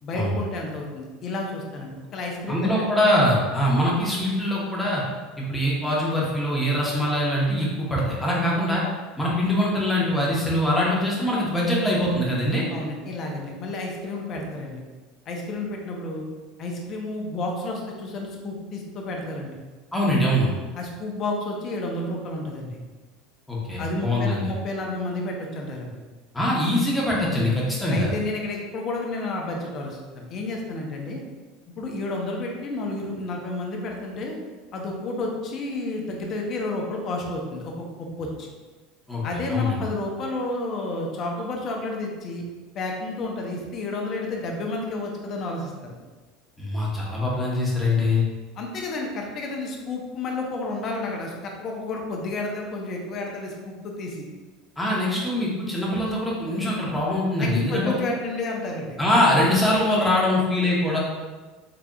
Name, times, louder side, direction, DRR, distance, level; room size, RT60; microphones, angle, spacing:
voice 1, 0.0-2.7 8.3-8.5 12.7-14.8 15.3-16.3 16.6-19.6 20.7-22.8 23.8-25.9 27.9-31.2 31.8-34.4 34.7-38.5 39.2-42.4 42.7-46.0 48.6-54.2 57.4-58.9, left 2 dB, 40° left, 0 dB, 0.7 m, -31 dB
voice 2, 2.5-5.0 5.4-8.8 9.2-12.6 19.9-20.5 23.5-24.5 26.3-28.1 39.1-39.2 39.5-39.8 46.6-48.2 54.8-58.0 59.0-61.0, left 1 dB, 5° left, -5 dB, 1.0 m, -23 dB
3.8 x 3.4 x 2.3 m, 1.3 s
supercardioid pair, 130°, 0 cm